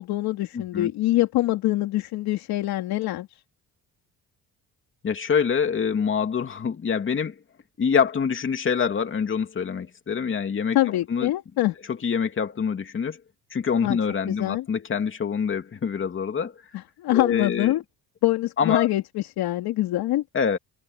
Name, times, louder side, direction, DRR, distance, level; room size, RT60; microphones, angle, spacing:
voice 1, 0.0-3.4 10.7-11.7 13.8-14.0 14.3-14.6 16.7-17.8 18.2-20.2, left 16 dB, 90° left, 3.7 m, -24 dB
voice 2, 0.5-0.9 5.0-7.4 7.8-11.3 11.9-13.2 13.5-16.6 17.1-17.7 18.6-18.9 20.3-20.6, left 6 dB, 35° left, 2.7 m, -25 dB
cardioid pair, 130°, 36 cm